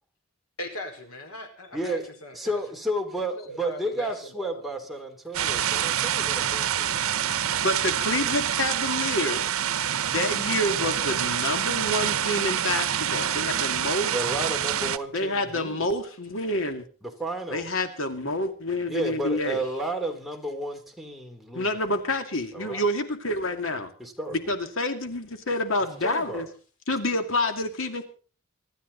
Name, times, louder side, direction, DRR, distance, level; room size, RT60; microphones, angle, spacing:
voice 1, 0.6-2.6 3.3-4.6 19.5-19.8, left 1 dB, 85° left, 4.8 m, -39 dB
voice 2, 1.7-2.1 2.3-7.0 14.1-15.9 17.0-17.7 18.9-22.0 22.5-22.8 24.0-24.4 26.0-26.5, right 1 dB, ahead, 3.1 m, -32 dB
sound 1, 5.3-15.0, right 9 dB, 80° right, 0.9 m, -26 dB
voice 3, 7.6-9.5 10.1-14.1 15.1-16.8 17.5-19.6 21.5-23.9 24.3-26.5 26.9-28.0, left 1 dB, 65° left, 2.5 m, -28 dB
25.0 x 12.5 x 4.1 m
head